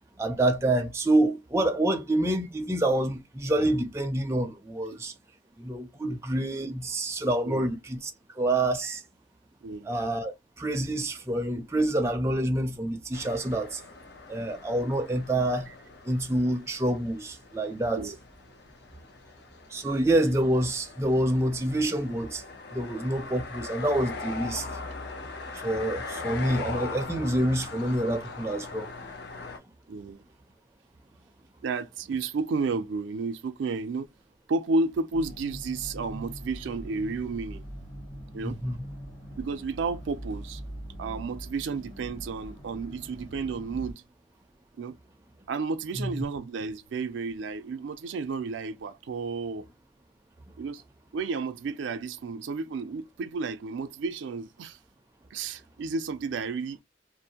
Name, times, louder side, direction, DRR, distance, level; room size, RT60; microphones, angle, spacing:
voice 1, 0.2-5.1 5.6-8.1 8.4-9.0 9.8-13.8 14.3-15.7 16.1-18.1 19.7-22.4 22.7-24.6 25.6-28.9 38.4-38.7 46.0-46.2, right 1 dB, 15° right, 0.4 m, -27 dB
voice 2, 7.4-7.8 8.8-8.9 9.6-9.9 17.9-18.2 29.9-30.2 31.6-34.1 34.5-37.6 38.3-38.6 39.4-40.6 41.0-44.0 44.8-45.0 45.5-49.7 50.6-50.8 51.1-54.8 55.3-56.8, right 4 dB, 85° right, 0.4 m, -32 dB
sound 1, 13.1-29.6, left 3 dB, 60° left, 0.6 m, -41 dB
sound 2, 35.1-43.9, equal, 40° left, 1.2 m, -42 dB
2.5 x 2.0 x 2.8 m
head